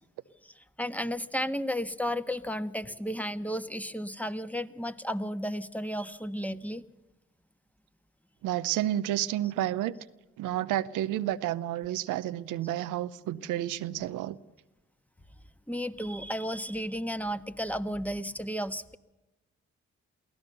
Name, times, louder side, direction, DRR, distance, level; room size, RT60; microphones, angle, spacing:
voice 1, 0.4-6.8 15.7-19.0, equal, 5° left, 10 dB, 1.3 m, -33 dB
voice 2, 8.4-9.9 10.4-14.4, right 13 dB, 90° right, 12 dB, 0.7 m, -30 dB
23.5 x 16.0 x 6.8 m, 1.0 s
supercardioid pair, 40°, 30 cm